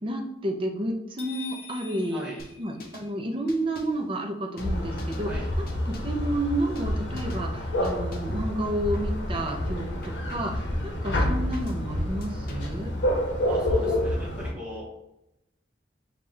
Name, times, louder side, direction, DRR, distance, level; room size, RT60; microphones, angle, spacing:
voice 1, 0.0-2.2 2.6-12.9, right 1 dB, 30° right, 2 dB, 0.6 m, -31 dB
sound 1, 1.2-3.4, left 6 dB, 35° left, 1.2 m, -44 dB
sound 2, 2.4-3.1 3.5-4.0 4.6-5.3 5.7-6.2 6.8-6.9 7.2-7.5 7.8-8.4 8.9-9.7 10.0-10.6 11.1-11.8 12.2-12.8, left 2 dB, 55° left, 0.7 m, -47 dB
sound 3, 4.6-14.5, left 1 dB, 90° left, 0.8 m, -28 dB
voice 2, 13.5-14.9, left 1 dB, 5° right, -6 dB, 1.4 m, -38 dB
5.3 x 2.4 x 3.3 m, 0.89 s
head